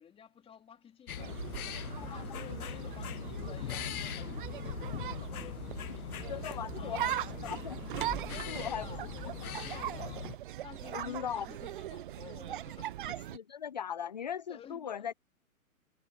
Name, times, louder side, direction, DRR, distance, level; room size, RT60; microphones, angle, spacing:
voice 1, 0.0-1.7 2.0-7.4 8.3-10.3 10.6-13.0 14.5-15.1, left 8 dB, 15° left, 2.8 m, -52 dB
sound 1, 1.1-10.4, left 10 dB, 75° left, 0.7 m, -41 dB
sound 2, 1.2-13.4, right 13 dB, 35° right, 0.7 m, -40 dB
voice 2, 6.3-7.1 7.4-7.9 8.5-8.9 9.2-9.3 10.9-11.5 13.1-15.1, left 8 dB, 35° left, 0.4 m, -39 dB
sound 3, 7.9-10.6 10.9-11.0, right 2 dB, 5° right, 1.8 m, -49 dB
figure-of-eight pair, 125°, 44 cm